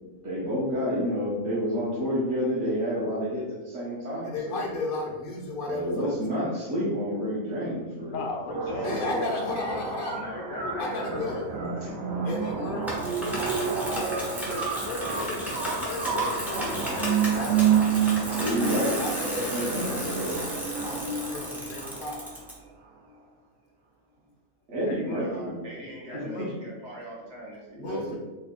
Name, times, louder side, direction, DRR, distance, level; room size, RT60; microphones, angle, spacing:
voice 1, 0.2-4.7 5.7-8.3 8.7-9.3 11.8-12.4 18.1-19.0 19.3-20.5 24.7-25.6 26.1-26.5 27.7-28.1, equal, 65° right, -7 dB, 1.1 m, -30 dB
voice 2, 4.2-6.2 8.8-10.2 10.8-11.5 12.2-14.1 18.6-18.7 19.0-20.3 21.3-22.2 27.8-28.1, left 2 dB, 55° left, -1 dB, 0.7 m, -34 dB
voice 3, 8.1-9.8 10.3-11.4 12.2-12.9 14.5-15.4 15.9-17.6 18.4-19.0 24.9-25.2 26.1-26.5, left 3 dB, 75° left, 2 dB, 1.0 m, -36 dB
sound 1, 8.5-22.5, right 7 dB, 90° right, 1.0 m, -29 dB
voice 4, 9.9-11.4 16.7-17.5 25.1-27.8, right 1 dB, 40° right, -4 dB, 0.9 m, -42 dB
Bicycle, 12.9-22.5, equal, ahead, 0.4 m, -34 dB
3.2 x 2.2 x 3.6 m, 1.2 s
omnidirectional pair, 1.4 m